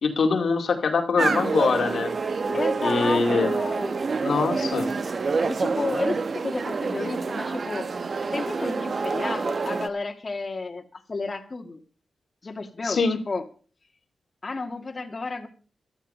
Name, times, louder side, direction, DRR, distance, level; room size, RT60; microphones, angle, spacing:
voice 1, 0.0-2.1 2.5-3.5 4.2-4.9 12.8-13.2, left 4 dB, 70° left, 4 dB, 2.2 m, -24 dB
sound 1, 1.2-9.9, right 4 dB, 55° right, 1.1 m, -27 dB
voice 2, 2.5-4.0 5.5-7.9 8.3-11.8 12.4-13.4 14.4-15.5, left 3 dB, 40° left, 3 dB, 1.9 m, -32 dB
14.0 x 13.0 x 5.4 m, 0.41 s
cardioid pair, 65°, 0 cm